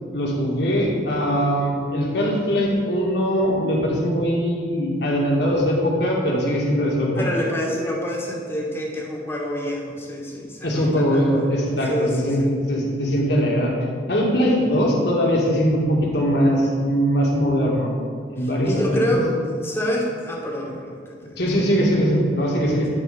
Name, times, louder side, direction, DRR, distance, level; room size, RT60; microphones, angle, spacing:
voice 1, 0.1-7.4 10.6-12.4 12.7-13.7 14.1-17.9 18.3-19.2 21.4-22.9, equal, 60° left, -2 dB, 1.9 m, -21 dB
voice 2, 7.1-11.2 11.9-12.5 18.4-21.4, equal, 15° left, -2 dB, 1.3 m, -27 dB
9.7 x 4.6 x 6.7 m, 2.1 s
head